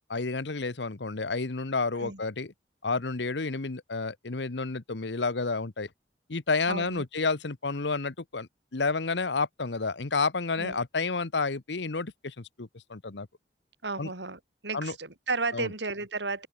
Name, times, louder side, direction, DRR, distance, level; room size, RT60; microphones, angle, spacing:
voice 1, 0.1-2.5 2.8-5.9 6.3-13.3 14.0-14.1 14.7-14.9 15.5-15.7, left 4 dB, 80° left, 1.1 m, -30 dB
voice 2, 6.7-7.0 10.6-10.8 13.8-16.5, right 3 dB, 85° right, 4.6 m, -33 dB
open air
head